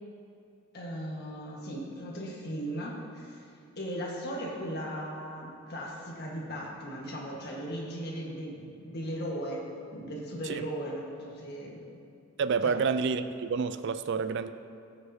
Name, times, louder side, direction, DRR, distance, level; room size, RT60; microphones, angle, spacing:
voice 1, 0.7-3.4 3.7-9.7 9.9-11.9 12.6-12.8, equal, 45° left, -3 dB, 1.5 m, -37 dB
voice 2, 12.4-14.5, right 5 dB, 50° right, 12 dB, 0.3 m, -29 dB
15.5 x 6.5 x 2.8 m, 2.5 s
head